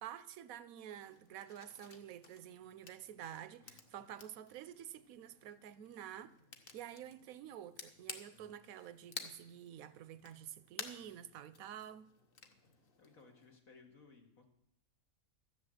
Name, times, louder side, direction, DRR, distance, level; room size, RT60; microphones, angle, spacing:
voice 1, 0.0-6.4 6.7-12.1, right 10 dB, 80° right, 1.0 m, -49 dB
sound 1, 1.0-13.6, left 4 dB, 45° left, 1.1 m, -54 dB
voice 2, 8.3-8.6 13.0-14.4, left 4 dB, 80° left, 2.4 m, -61 dB
14.0 x 6.8 x 7.9 m
omnidirectional pair, 1.5 m